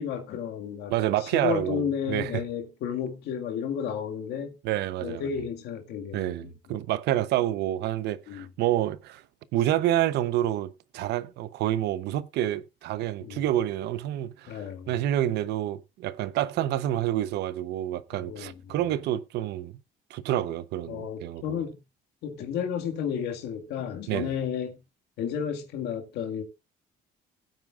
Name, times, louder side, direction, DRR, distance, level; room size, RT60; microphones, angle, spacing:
voice 1, 0.0-0.9 1.2-4.6 5.0-6.8 8.3-8.5 13.2-13.4 14.5-14.9 18.1-18.5 20.9-21.8 22.2-24.8 25.2-26.4, left 8 dB, 80° left, 2.0 m, -32 dB
voice 2, 0.9-2.4 4.6-5.2 6.1-9.2 9.5-19.7 20.1-21.6 24.1-24.3, right 13 dB, 80° right, 0.9 m, -28 dB
17.5 x 9.1 x 2.5 m
cardioid pair, 110°, 17 cm